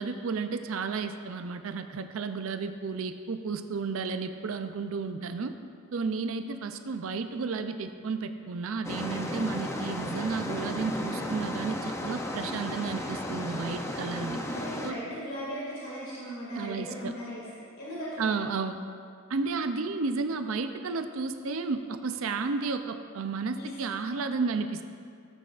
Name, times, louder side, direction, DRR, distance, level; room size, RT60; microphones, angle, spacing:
voice 1, 0.0-5.5 5.9-14.4 14.8-15.0 16.5-17.1 18.2-18.8 19.3-24.9, right 4 dB, 70° right, 8 dB, 0.5 m, -32 dB
sound 1, 8.8-14.9, left 1 dB, 10° left, 0.5 m, -34 dB
voice 2, 13.7-18.3 23.6-23.8, equal, 70° left, -8 dB, 2.2 m, -38 dB
15.0 x 8.2 x 2.5 m, 2.3 s
head